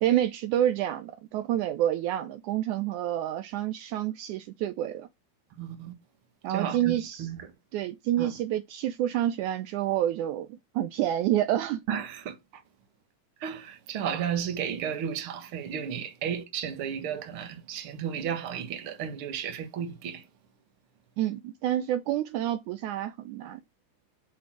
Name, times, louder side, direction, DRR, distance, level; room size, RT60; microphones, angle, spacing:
voice 1, 0.0-5.1 6.4-7.3 7.7-11.8 21.2-23.6, right 12 dB, 75° right, 2.0 m, -28 dB
voice 2, 5.6-5.9 6.5-7.5 8.2-8.3 11.9-12.6 13.4-20.2, right 8 dB, 50° right, 1.9 m, -33 dB
6.5 x 5.6 x 6.0 m
omnidirectional pair, 3.7 m